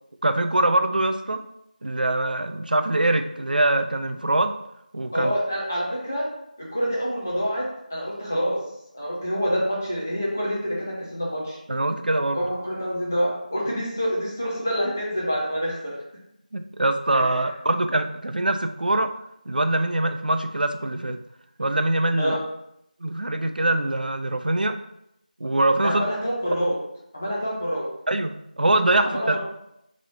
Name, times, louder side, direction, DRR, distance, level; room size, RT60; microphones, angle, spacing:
voice 1, 0.2-1.4 1.8-4.6 4.9-5.3 11.7-12.4 16.5-19.1 19.5-21.2 21.6-22.4 23.0-24.8 25.4-26.0 28.1-29.4, right 2 dB, 75° right, 8 dB, 0.4 m, -23 dB
voice 2, 5.1-6.3 6.6-8.6 8.9-11.6 12.3-15.9 17.1-17.5 22.2-22.4 25.8-26.8 27.1-27.9 29.0-29.4, equal, 20° left, -5 dB, 0.5 m, -27 dB
3.1 x 2.7 x 4.1 m, 0.80 s
figure-of-eight pair, 180°, 5 cm